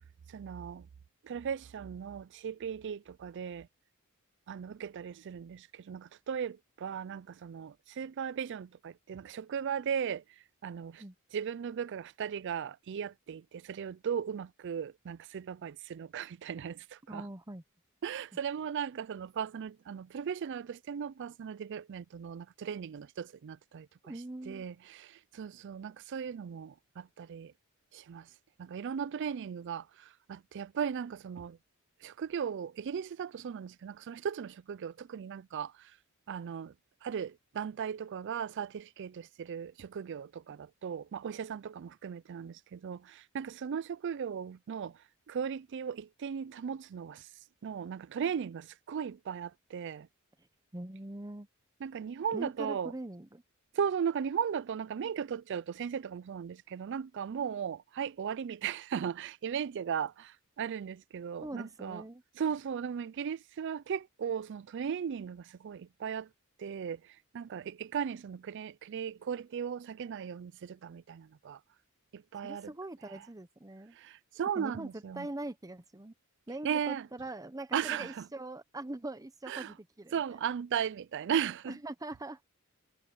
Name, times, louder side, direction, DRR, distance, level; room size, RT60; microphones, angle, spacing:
voice 1, 0.3-0.9 1.2-3.7 4.5-10.2 10.6-11.0 11.3-17.3 18.0-23.9 24.5-27.5 27.9-28.3 28.6-31.6 32.0-35.9 36.3-36.7 37.0-45.0 45.3-47.3 47.6-50.1 51.8-52.9 53.7-62.0 62.4-66.3 66.6-71.6 72.1-72.7 73.9-75.3 76.6-77.1 77.7-78.3 79.5-79.7 80.1-81.8, right 7 dB, 55° right, 0.4 m, -37 dB
voice 2, 17.1-17.6 24.0-24.7 50.7-51.5 52.3-53.4 61.4-62.2 72.4-74.0 74.6-76.1 76.5-80.4 81.7-82.4, right 2 dB, 15° right, 0.8 m, -42 dB
head